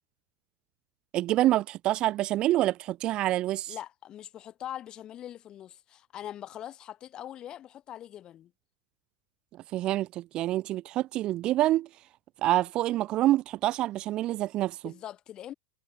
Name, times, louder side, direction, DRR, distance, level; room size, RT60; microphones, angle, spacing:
voice 1, 1.1-3.7 9.7-11.9 12.4-14.9, right 15 dB, 40° right, 0.3 m, -27 dB
voice 2, 3.7-8.5 14.8-15.5, left 11 dB, 35° left, 3.3 m, -42 dB
hypercardioid pair, 115°, 2 cm